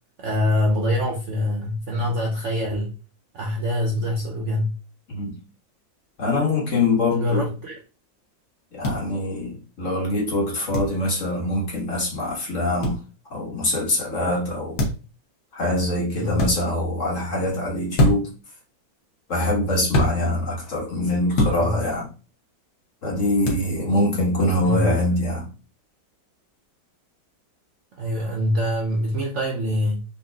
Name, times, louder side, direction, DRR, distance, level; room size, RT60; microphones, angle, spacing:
voice 1, 0.2-2.9 3.3-4.7 7.1-7.8 16.1-16.4 21.6-21.8 24.6-24.9 27.9-30.0, left 1 dB, 85° right, 0.6 m, -24 dB
voice 2, 6.2-7.5 8.7-13.0 13.3-14.8 15.5-18.3 19.3-22.1 23.0-25.5, left 1 dB, 45° left, 1.6 m, -24 dB
sound 1, 8.8-9.0 10.7-10.9 12.8-13.0 14.8-15.1 16.3-16.5 17.9-18.4 19.9-20.1 21.3-21.6 23.4-23.7, left 1 dB, 75° left, 1.7 m, -21 dB
4.0 x 3.7 x 2.3 m
omnidirectional pair, 2.1 m